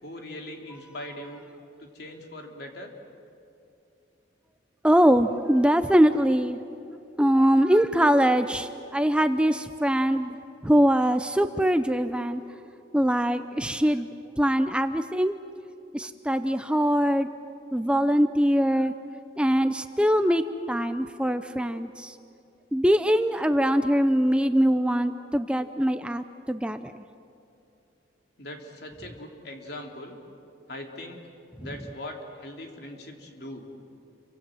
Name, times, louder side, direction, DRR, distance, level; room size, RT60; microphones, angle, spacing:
voice 1, 0.0-1.4 1.8-2.9 28.4-30.2 30.7-31.2 31.6-33.7, left 1 dB, 60° left, 2 dB, 3.1 m, -40 dB
voice 2, 4.8-6.6 7.2-10.4 10.6-12.4 12.9-14.1 14.4-15.4 15.9-17.3 17.7-18.9 19.4-22.2 22.7-27.0 31.6-31.7, equal, 5° right, 9 dB, 0.5 m, -22 dB
29.0 x 24.5 x 7.7 m, 2.7 s
head